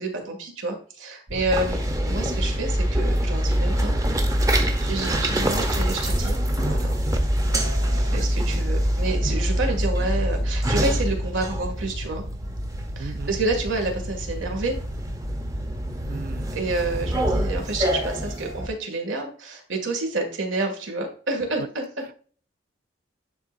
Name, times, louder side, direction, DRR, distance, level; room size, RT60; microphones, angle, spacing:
voice 1, 0.0-1.8 2.1-3.9 4.5-6.4 6.7-6.9 7.9-12.2 13.0-14.8 16.5-22.1, right 2 dB, 90° right, 1.9 m, -29 dB
sound 1, 1.3-17.6, equal, 65° right, 1.0 m, -26 dB
sound 2, 1.5-18.7, right 1 dB, 20° right, 0.7 m, -29 dB
voice 2, 4.8-5.2 8.1-8.3 13.0-13.3 16.1-16.5 21.6-21.7, right 4 dB, 45° right, 0.4 m, -36 dB
10.5 x 3.8 x 2.5 m
head